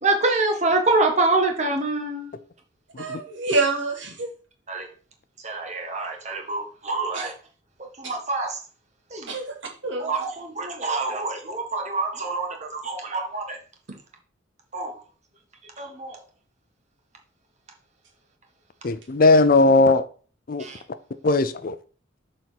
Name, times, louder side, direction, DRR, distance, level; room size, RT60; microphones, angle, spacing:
voice 1, 0.0-2.3 4.7-4.9 5.4-7.3 8.0-8.6 9.1-9.3 10.0-13.6 14.7-14.9 15.8-16.2 20.6-20.8, right 3 dB, 35° right, 1.6 m, -26 dB
voice 2, 3.0-4.3 7.1-7.3 8.0-8.1 9.3-9.6 9.8-10.2, right 3 dB, 65° right, 2.1 m, -27 dB
voice 3, 18.8-20.1 20.5-20.7 21.2-21.8, left 3 dB, 45° left, 0.5 m, -18 dB
6.9 x 4.2 x 5.9 m
head